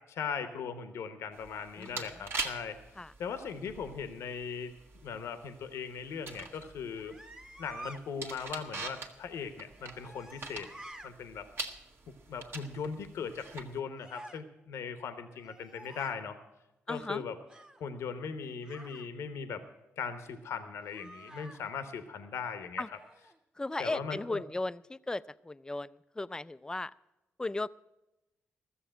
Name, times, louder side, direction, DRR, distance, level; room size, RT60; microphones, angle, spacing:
voice 1, 0.1-2.8 3.2-4.7 5.0-7.1 7.6-10.7 11.0-11.5 12.3-16.4 16.9-17.4 17.8-19.6 20.0-22.8 23.8-24.4, left 6 dB, 75° left, 10 dB, 0.9 m, -39 dB
sound 1, 1.3-13.8, right 3 dB, 55° right, 1.5 m, -44 dB
voice 2, 1.8-2.1 3.0-3.1 16.9-17.2 22.8-22.9 23.6-26.9 27.4-27.7, left 2 dB, 15° left, 17 dB, 0.4 m, -36 dB
sound 2, 6.9-8.0 9.7-11.1 14.0-14.4 15.3-16.2 17.5-17.9 18.6-19.1 20.8-21.6 22.9-23.4, right 1 dB, 15° right, 1.2 m, -49 dB
14.0 x 7.1 x 8.7 m, 0.97 s
supercardioid pair, 60°, 5 cm